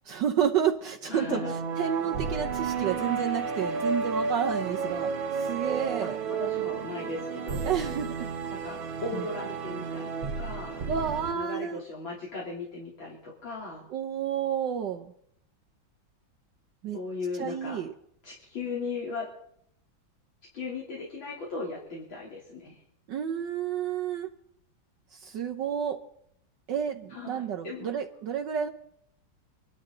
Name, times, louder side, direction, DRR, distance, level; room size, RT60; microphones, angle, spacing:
voice 1, 0.1-1.4 1.8-5.1 5.4-6.2 7.6-8.3 9.1-9.2 10.9-11.8 13.9-15.1 16.8-17.0 17.4-17.9 23.1-24.3 25.1-26.0 26.7-28.7, right 8 dB, 65° right, 5 dB, 1.5 m, -30 dB
sound 1, 1.0-11.3, right 5 dB, 85° right, 2.3 m, -32 dB
voice 2, 1.1-2.0 6.0-7.6 8.5-10.9 11.3-13.9 16.9-17.8 18.2-19.3 20.5-22.8 27.1-28.0, left 4 dB, 75° left, -4 dB, 3.8 m, -37 dB
25.5 x 12.0 x 3.8 m, 0.70 s
omnidirectional pair, 2.1 m